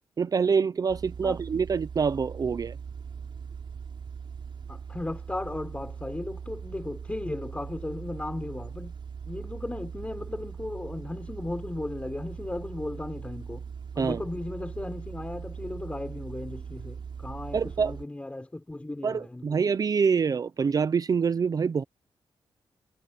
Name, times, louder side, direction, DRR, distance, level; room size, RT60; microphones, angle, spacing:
voice 1, 0.2-2.8 14.0-14.2 17.5-17.9 19.0-21.8, right 6 dB, 40° right, 0.6 m, -26 dB
sound 1, 0.9-18.0, right 6 dB, 60° right, 6.6 m, -40 dB
voice 2, 4.7-8.9 9.2-13.6 13.9-19.6, left 2 dB, 15° left, 5.8 m, -36 dB
wide cardioid pair, 140°, 10 cm